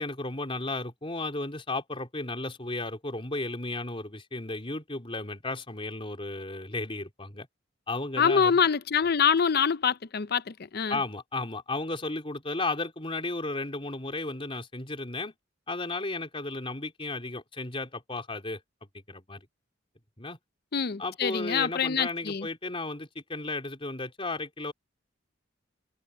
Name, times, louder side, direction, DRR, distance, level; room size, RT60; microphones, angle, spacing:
voice 1, 0.0-7.5 7.9-8.5 10.9-15.3 15.7-18.6 19.1-19.5 20.2-20.4 21.0-24.7, left 2 dB, 30° left, 3.8 m, -34 dB
voice 2, 8.2-11.0 20.7-22.5, left 6 dB, 55° left, 0.6 m, -25 dB
head